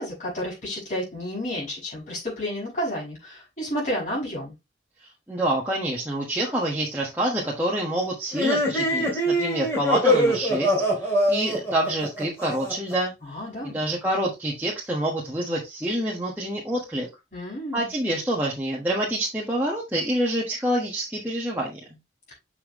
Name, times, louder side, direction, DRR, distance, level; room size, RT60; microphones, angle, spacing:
voice 1, 0.0-4.5 13.2-13.8 17.3-17.9, equal, 40° left, 5.2 m, -31 dB
voice 2, 5.3-10.7 11.0-13.4 13.6-17.1 17.7-21.8, right 1 dB, 10° right, 1.4 m, -27 dB
sound 1, 8.3-12.9, equal, 15° left, 2.7 m, -23 dB
7.1 x 5.7 x 3.1 m
head